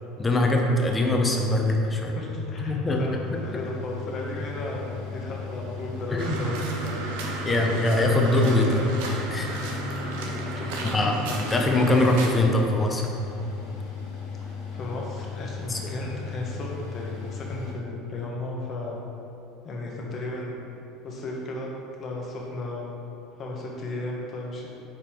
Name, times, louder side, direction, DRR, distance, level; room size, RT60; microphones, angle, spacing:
voice 1, 0.2-2.1 2.7-3.0 3.3-3.4 6.1-6.4 7.4-8.9 9.3-9.7 10.9-13.0 15.7-15.8, left 1 dB, 20° left, 1 dB, 0.8 m, -22 dB
voice 2, 2.1-7.0 7.3-7.5 10.5-11.1 14.7-19.0 19.6-20.7 21.0-21.7 22.0-23.0 23.4-24.7, left 2 dB, 40° left, -2 dB, 1.3 m, -35 dB
Mechanical fan, 2.3-17.8, left 6 dB, 70° left, 1.2 m, -37 dB
sound 1, 6.2-12.3, right 3 dB, 80° right, 0.8 m, -33 dB
5.1 x 4.1 x 4.5 m, 2.9 s
supercardioid pair, 100°, 0 cm